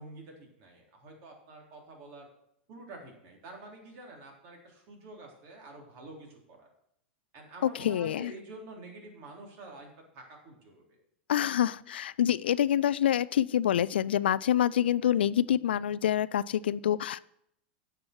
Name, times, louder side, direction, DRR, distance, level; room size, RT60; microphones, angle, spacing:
voice 1, 0.0-2.3 2.7-6.7 7.3-11.0, right 2 dB, 45° right, 1 dB, 3.7 m, -48 dB
voice 2, 7.7-8.3 11.3-17.2, left 10 dB, 70° left, 18 dB, 0.4 m, -26 dB
15.5 x 6.1 x 4.6 m, 0.73 s
figure-of-eight pair, 90°, 6 cm